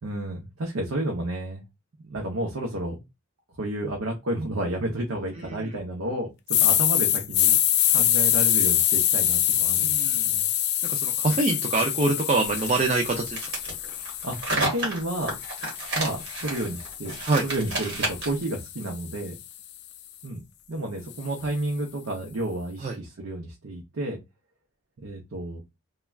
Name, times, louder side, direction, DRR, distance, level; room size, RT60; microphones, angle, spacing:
voice 1, 0.0-1.6 2.0-3.0 3.6-7.6 7.9-9.9 10.2-10.5 14.2-15.4 16.0-17.2 17.4-19.3 20.2-20.4 20.7-24.2 25.0-25.6, right 1 dB, 70° right, 0 dB, 0.6 m, -31 dB
sound 1, 6.5-14.5 15.0-19.2, left 11 dB, 50° left, 0.3 m, -25 dB
voice 2, 9.8-10.3 10.9-13.4 17.3-17.4 22.8-23.0, right 3 dB, 30° right, 3 dB, 0.4 m, -25 dB
sound 2, 12.5-18.4, right 2 dB, 50° right, 1.4 m, -31 dB
3.2 x 2.3 x 2.3 m, 0.23 s
head